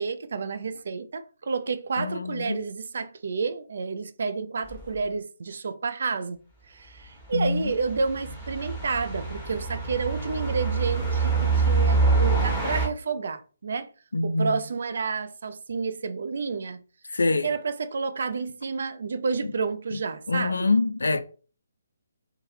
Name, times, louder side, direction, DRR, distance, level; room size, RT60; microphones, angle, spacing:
voice 1, 0.0-6.4 6.7-13.9 14.2-16.8 17.4-20.7, right 4 dB, 55° right, 0.4 m, -30 dB
voice 2, 2.0-2.6 7.3-7.7 14.1-14.6 17.1-17.5 19.4-19.5 19.9-20.0 20.3-21.2, left 3 dB, 65° left, 0.4 m, -25 dB
sound 1, 4.7-4.8 7.4-12.9, right 4 dB, ahead, 1.3 m, -25 dB
3.0 x 2.2 x 3.0 m
figure-of-eight pair, 140°, 0 cm